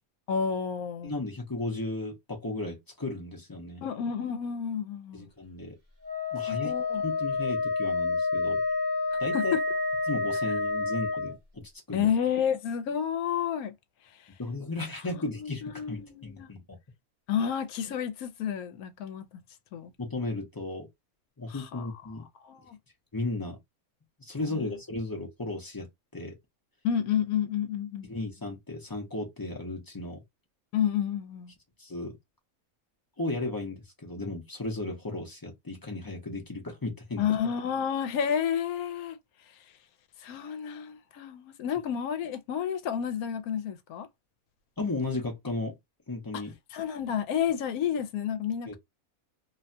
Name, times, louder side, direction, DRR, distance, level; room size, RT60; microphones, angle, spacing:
voice 1, 0.3-1.1 3.8-5.3 6.5-7.0 9.3-9.6 11.9-13.7 15.2-16.5 17.3-19.3 19.7-19.9 21.5-21.9 22.4-22.8 24.6-24.7 26.8-28.1 30.7-31.5 37.2-39.2 40.2-44.1 46.7-48.8, left 8 dB, 80° left, 1.1 m, -30 dB
voice 2, 1.0-3.8 5.1-5.8 6.3-6.8 7.0-8.6 9.2-9.6 10.1-11.6 11.9-12.1 14.4-16.8 20.0-20.9 21.4-22.2 23.1-23.6 24.2-26.4 28.0-30.2 31.8-32.2 33.2-37.2 44.8-45.7 46.1-46.5 48.7-48.8, left 2 dB, 25° left, 0.5 m, -35 dB
Wind instrument woodwind instrument, 6.0-11.3, left 3 dB, 45° right, 1.1 m, -29 dB
2.7 x 2.2 x 2.6 m
omnidirectional pair, 1.5 m